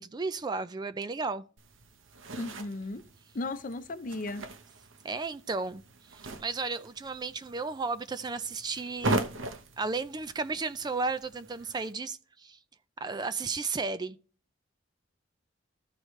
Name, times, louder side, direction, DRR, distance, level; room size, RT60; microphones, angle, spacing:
voice 1, 0.0-1.4 5.0-5.8 6.4-9.2 9.8-12.6 13.0-14.2, right 4 dB, 20° right, 0.4 m, -33 dB
sound 1, 1.6-11.9, right 2 dB, 80° right, 0.9 m, -39 dB
voice 2, 2.4-3.0 3.3-4.4, left 2 dB, 45° left, 0.7 m, -35 dB
14.0 x 4.8 x 3.2 m
head